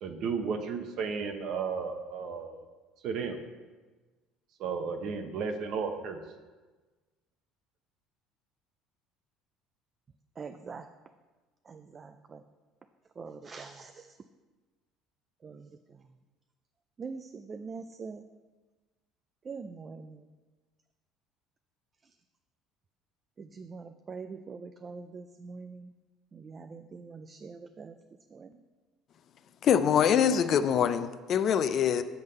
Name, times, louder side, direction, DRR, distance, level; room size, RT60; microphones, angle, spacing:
voice 1, 0.0-2.6 3.0-3.4 4.6-6.2, right 5 dB, 60° right, 6 dB, 0.8 m, -33 dB
voice 2, 10.4-10.9 11.7-12.4 13.2-14.1 15.4-15.7 17.0-18.2 19.5-20.2 23.4-25.9 26.3-27.9 28.3-28.5, right 4 dB, 30° right, 8 dB, 0.3 m, -43 dB
voice 3, 29.6-32.0, left 8 dB, 45° left, 11 dB, 0.4 m, -24 dB
7.8 x 3.6 x 6.6 m, 1.3 s
cardioid pair, 125°, 0 cm